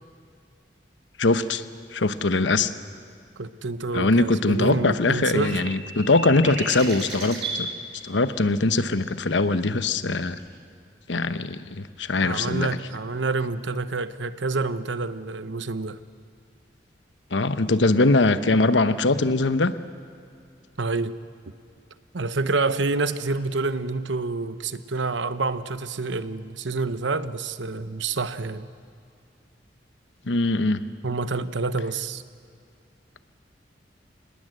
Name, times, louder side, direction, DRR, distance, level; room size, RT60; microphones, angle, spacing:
voice 1, 1.2-1.6 1.9-2.7 3.9-7.7 8.0-10.4 11.1-12.7 17.3-19.7 30.3-30.8, left 2 dB, 80° left, 12 dB, 1.0 m, -22 dB
voice 2, 3.4-5.6 12.2-16.0 20.8-21.2 22.1-28.7 31.0-32.2, right 3 dB, 90° right, 13 dB, 0.9 m, -28 dB
sound 1, 5.3-7.6 10.4-10.5, right 3 dB, 65° right, 7.2 m, -34 dB
27.0 x 20.0 x 8.0 m, 2.4 s
head